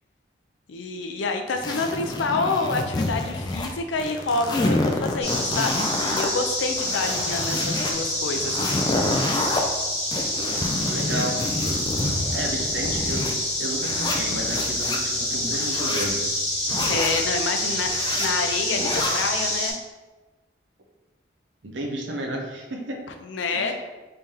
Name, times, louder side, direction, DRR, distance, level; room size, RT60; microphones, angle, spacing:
voice 1, 0.7-8.7 16.8-19.8 23.2-23.8, left 3 dB, 90° left, 5 dB, 0.4 m, -28 dB
sound 1, 1.6-3.7 4.0-6.3 6.7-7.9 8.3-9.6 10.1-13.3 13.8-15.0 15.5-16.1 16.7-17.2 17.8-18.3 18.8-19.3, left 2 dB, 25° left, 0.3 m, -28 dB
voice 2, 1.6-2.1 10.8-11.4 12.3-13.3 13.6-16.3 21.6-23.0 23.5-23.8, right 1 dB, 80° right, 2 dB, 0.6 m, -32 dB
sound 2, 5.2-19.7, left 1 dB, 40° left, 1.1 m, -27 dB
3.7 x 3.3 x 2.7 m, 1.2 s
head